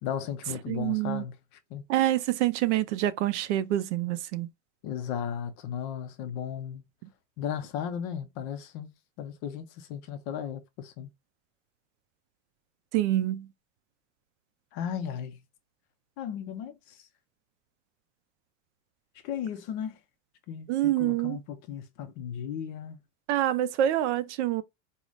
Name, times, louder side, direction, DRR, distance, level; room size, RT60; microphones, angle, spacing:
voice 1, 0.0-1.4 1.7-1.8 4.8-6.8 7.4-8.9 9.2-11.1 14.7-15.4 16.2-17.0 19.2-20.0 20.5-23.0, left 8 dB, 30° left, 0.4 m, -35 dB
voice 2, 0.7-1.2 1.9-4.5 12.9-13.5 20.7-21.4 23.3-24.6, right 13 dB, 60° right, 0.6 m, -26 dB
4.7 x 2.1 x 3.8 m
supercardioid pair, 165°, 39 cm